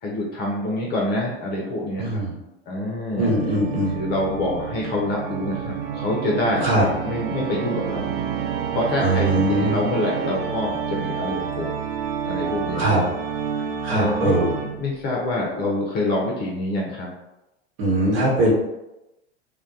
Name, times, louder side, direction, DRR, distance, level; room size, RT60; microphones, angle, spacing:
voice 1, 0.0-2.2 2.7-3.3 4.0-6.7 7.0-8.0 8.7-11.8 12.2-12.9 13.9-17.1, left 1 dB, 30° left, -2 dB, 0.5 m, -26 dB
voice 2, 2.0-2.4 3.2-3.9 6.6-6.8 9.0-9.8 12.7-13.0 13.8-14.5 17.8-18.5, right 1 dB, 60° right, -5 dB, 1.2 m, -21 dB
Organ, 3.2-15.0, right 7 dB, 40° right, 0.4 m, -29 dB
2.2 x 2.2 x 2.6 m, 0.94 s
figure-of-eight pair, 90°, 33 cm